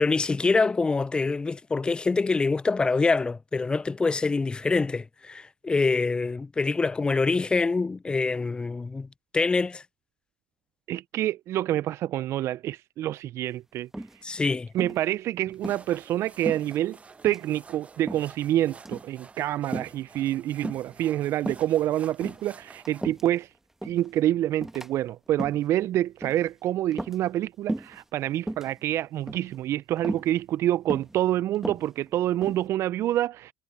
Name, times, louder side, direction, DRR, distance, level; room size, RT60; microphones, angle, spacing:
voice 1, 0.0-9.1 9.3-9.8 14.2-14.7, left 4 dB, 15° left, 0.3 m, -25 dB
voice 2, 10.9-13.9 14.7-17.0 17.2-23.5 23.8-33.5, right 13 dB, 50° right, 0.5 m, -27 dB
sound 1, 13.9-14.4 14.8-15.1 15.5-15.8 16.4-17.0 17.2-17.5 18.1-18.4 18.8-19.1 19.7-20.0 20.6-21.0 21.4-21.7 22.1-23.4 23.8-24.1 24.6-24.9 25.3-25.7 26.2-26.5 26.9-27.4 27.7-28.0 28.4-28.7 29.3-29.6 30.0-30.3 30.9-31.2 31.5-32.7, right 1 dB, 5° right, 1.4 m, -35 dB
sound 2, 15.5-23.1, right 4 dB, 20° right, 1.0 m, -50 dB
hypercardioid pair, 80°, 6 cm